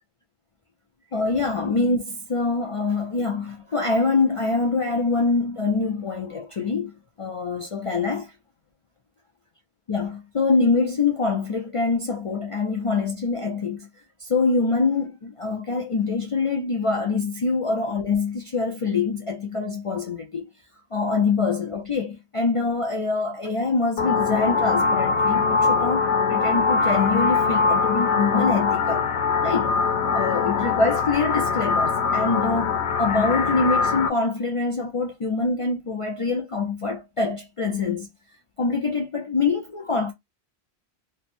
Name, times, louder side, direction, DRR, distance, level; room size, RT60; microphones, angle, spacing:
voice 1, 1.1-8.3 9.9-13.9 14.2-20.5 20.9-29.1 29.4-29.7 30.1-38.1 38.6-40.1, left 4 dB, 45° left, 0.4 m, -25 dB
sound 1, 24.0-34.1, left 5 dB, 85° left, 0.9 m, -22 dB
3.2 x 2.0 x 4.2 m
omnidirectional pair, 1.1 m